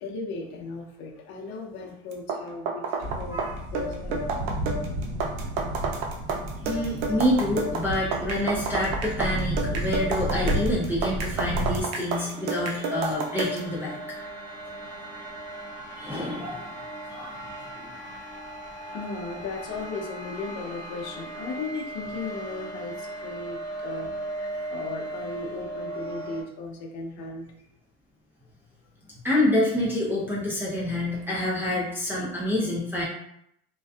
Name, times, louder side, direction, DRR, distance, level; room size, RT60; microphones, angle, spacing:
voice 1, 0.0-2.9 3.2-3.4 3.7-4.6 4.9-5.0 18.9-27.5, left 3 dB, 60° left, 1 dB, 0.7 m, -36 dB
sound 1, 2.1-13.7, right 4 dB, 85° right, 0.5 m, -30 dB
sound 2, 3.0-11.8, right 1 dB, 45° right, 0.8 m, -32 dB
voice 2, 6.6-14.0 16.0-16.7 17.1-17.4 17.8-17.9 29.2-33.0, left 1 dB, 5° right, -6 dB, 0.5 m, -27 dB
sound 3, 11.9-26.4, right 1 dB, 15° left, 1.4 m, -38 dB
2.5 x 2.3 x 2.3 m, 0.73 s
cardioid pair, 135°, 30 cm